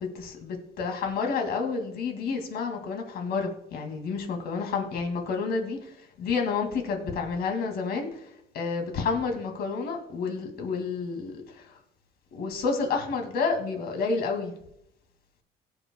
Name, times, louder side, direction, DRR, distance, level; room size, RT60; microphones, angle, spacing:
voice 1, 0.0-5.8 6.2-8.2 8.5-11.7 12.3-14.5, left 4 dB, 70° left, 4 dB, 2.2 m, -30 dB
19.0 x 6.8 x 2.2 m, 0.78 s
cardioid pair, 110°, 17 cm